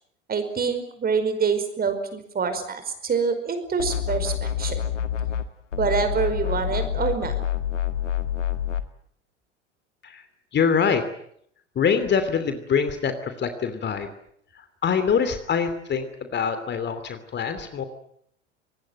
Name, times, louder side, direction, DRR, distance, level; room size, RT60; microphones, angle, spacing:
voice 1, 0.3-4.8 5.8-7.3, right 5 dB, 25° right, 9 dB, 5.2 m, -26 dB
sound 1, 3.8-5.5 5.7-8.8, left 10 dB, 80° left, 1.7 m, -27 dB
voice 2, 10.5-11.1 11.7-14.1 14.5-17.8, left 6 dB, 30° left, 10 dB, 2.9 m, -24 dB
25.5 x 20.0 x 9.2 m, 0.68 s
figure-of-eight pair, 80°, 36 cm